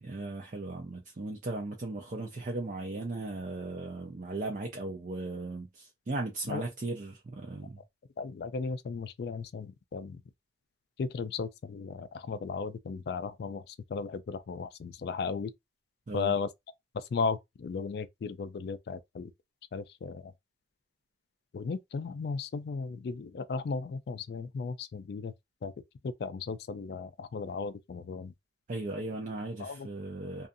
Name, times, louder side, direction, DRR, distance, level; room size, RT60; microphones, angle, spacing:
voice 1, 0.0-7.8 16.1-16.4 28.7-30.5, right 2 dB, 45° right, 0.5 m, -37 dB
voice 2, 8.2-10.2 11.0-15.5 16.1-16.5 16.9-19.3 19.7-20.3 21.5-25.3 25.6-25.7 26.0-28.3 29.6-29.9, left 5 dB, 60° left, 0.3 m, -35 dB
2.5 x 2.4 x 2.6 m
head